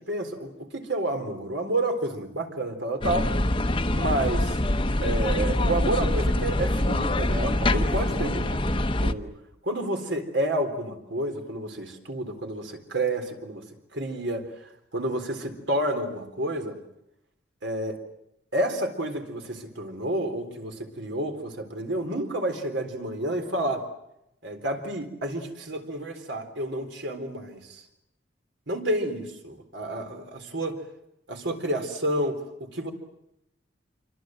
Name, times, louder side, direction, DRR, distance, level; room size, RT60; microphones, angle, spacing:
voice 1, 0.1-3.3 3.9-4.6 5.0-8.6 9.0-9.3 9.6-13.6 13.9-14.5 14.9-16.8 17.6-18.0 18.5-23.8 24.4-27.8 28.7-30.8 31.3-32.9, right 1 dB, 70° right, 5 dB, 3.9 m, -30 dB
sound 1, 3.0-9.1, left 1 dB, 25° left, 0.9 m, -24 dB
27.5 x 24.5 x 7.8 m, 0.84 s
head